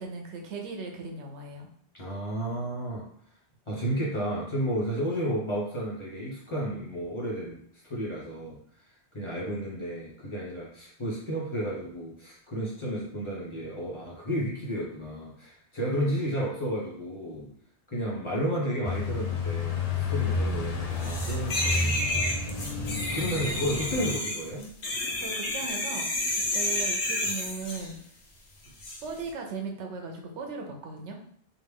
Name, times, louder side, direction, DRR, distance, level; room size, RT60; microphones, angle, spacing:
voice 1, 0.0-1.7 25.2-26.1 26.5-28.0 29.0-31.2, right 4 dB, 80° right, 2 dB, 0.9 m, -37 dB
voice 2, 1.9-3.0 3.7-17.5 17.9-22.2 23.1-24.7, equal, 25° left, -6 dB, 1.1 m, -32 dB
sound 1, 18.8-24.2, left 3 dB, 50° left, 0.5 m, -30 dB
sound 2, 21.0-27.9 28.8-29.0, left 1 dB, 70° left, 1.0 m, -30 dB
3.3 x 2.5 x 3.5 m, 0.63 s
omnidirectional pair, 1.2 m